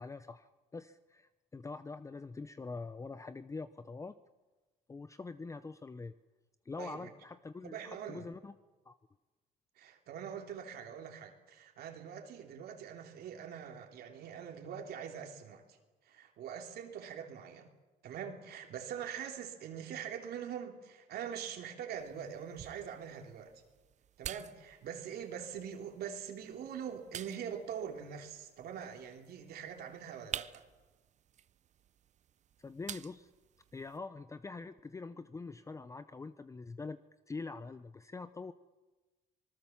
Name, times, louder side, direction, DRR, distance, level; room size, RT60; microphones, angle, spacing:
voice 1, 0.0-4.2 4.9-6.1 6.7-8.5 8.9-9.0 32.6-33.3 33.7-37.0 37.3-38.5, left 3 dB, 20° left, 13 dB, 0.6 m, -44 dB
voice 2, 6.8-7.1 7.6-8.2 9.8-15.8 16.0-17.7 18.0-23.5 24.2-30.6, right 8 dB, 70° right, 3 dB, 3.1 m, -43 dB
sound 1, 22.0-34.0, right 10 dB, 45° right, 0.6 m, -50 dB
25.5 x 19.5 x 7.2 m, 1.2 s
cardioid pair, 110°, 17 cm